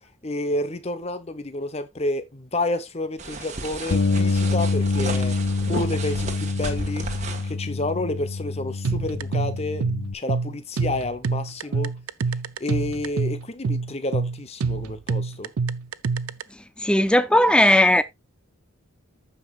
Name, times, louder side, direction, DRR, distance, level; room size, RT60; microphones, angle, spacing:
voice 1, 0.2-5.3 5.7-7.1 7.4-9.9 10.1-11.9 12.6-15.5, left 2 dB, 30° left, 0.8 m, -29 dB
sound 1, 3.2-7.5, right 3 dB, 30° right, 1.5 m, -34 dB
Bass guitar, 3.9-10.1, left 3 dB, 65° left, 0.5 m, -26 dB
sound 2, 8.8-16.4, right 4 dB, 75° right, 0.5 m, -26 dB
voice 2, 16.8-18.0, left 1 dB, 5° left, 0.4 m, -17 dB
14.5 x 5.3 x 2.4 m
head